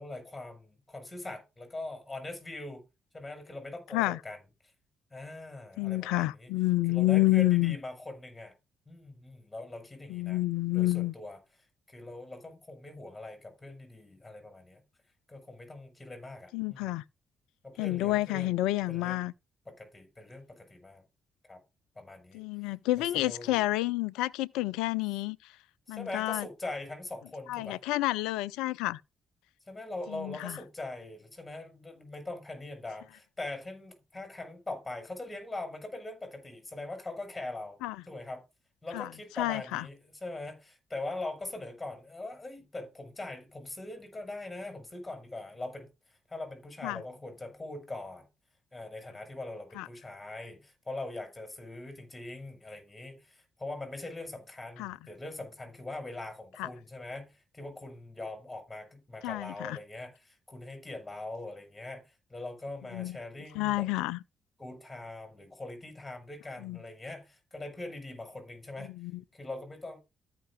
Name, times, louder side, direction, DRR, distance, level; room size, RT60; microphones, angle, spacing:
voice 1, 0.0-2.8 3.1-4.4 5.1-6.5 6.9-8.5 8.9-10.4 10.7-11.4 11.9-14.8 15.3-17.0 17.6-18.5 18.9-19.3 19.7-21.0 21.4-21.6 22.0-22.4 23.0-23.7 25.9-27.8 29.7-37.8 38.1-38.4 38.8-48.3 48.7-63.9 64.6-68.9 69.3-70.0, left 2 dB, 15° left, 5.3 m, -42 dB
voice 2, 5.8-7.8 10.1-11.1 16.5-17.0 17.8-19.3 22.3-25.4 25.9-26.5 27.5-29.0 30.1-30.6 37.8-38.0 38.9-39.1 39.4-39.8 46.8-47.0 49.8-49.9 54.8-55.0 56.6-56.7 59.2-59.8 62.9-63.2 63.5-64.2 66.6-66.8 68.9-69.2, left 18 dB, 70° left, 0.4 m, -29 dB
13.5 x 5.9 x 3.7 m
figure-of-eight pair, 40°, 0 cm